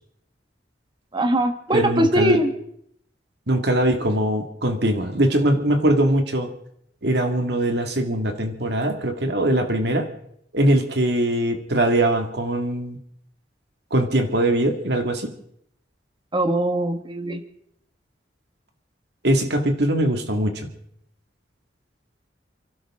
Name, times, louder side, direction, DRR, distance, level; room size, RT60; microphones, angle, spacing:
voice 1, 1.1-2.5 16.3-17.4, right 1 dB, 25° right, 6 dB, 1.5 m, -21 dB
voice 2, 1.7-2.4 3.5-6.5 7.0-10.1 10.5-13.0 13.9-15.3 19.2-20.7, right 1 dB, 65° right, 5 dB, 2.2 m, -21 dB
29.5 x 12.0 x 3.8 m, 0.70 s
head